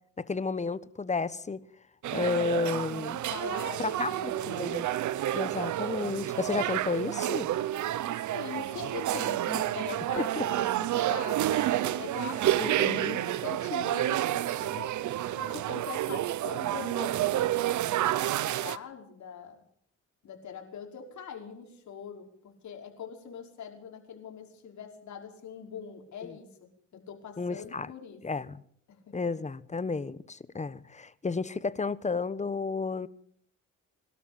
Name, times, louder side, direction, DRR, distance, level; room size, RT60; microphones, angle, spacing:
voice 1, 0.2-1.6 2.1-3.2 3.8-4.9 5.3-7.5 10.2-10.4 12.6-13.2 26.2-26.3 27.4-27.9 28.2-28.6 29.1-33.1, left 4 dB, 25° left, 1.2 m, -32 dB
sound 1, 2.0-18.8, right 13 dB, 75° right, 1.0 m, -30 dB
voice 2, 3.3-4.8 8.1-12.9 13.1-17.5 17.9-19.6 20.2-28.2 28.9-29.1, left 7 dB, 70° left, 5.6 m, -43 dB
22.5 x 12.5 x 9.0 m
cardioid pair, 90°, 30 cm